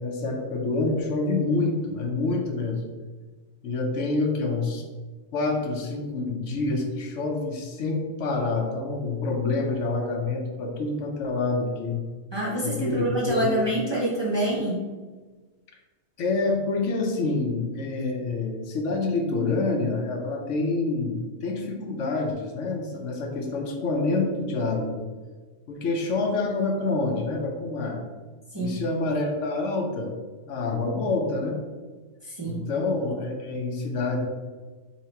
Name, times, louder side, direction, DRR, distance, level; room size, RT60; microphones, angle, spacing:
voice 1, 0.0-2.8 3.6-4.8 5.3-12.0 12.6-13.6 16.2-25.1 25.7-28.0 28.6-30.1 30.5-31.6 32.4-34.2, left 3 dB, 80° left, 2 dB, 1.0 m, -27 dB
voice 2, 12.3-14.8 28.5-28.8 32.2-32.6, right 1 dB, 30° right, -5 dB, 0.5 m, -26 dB
2.9 x 2.9 x 4.3 m, 1.3 s
omnidirectional pair, 1.2 m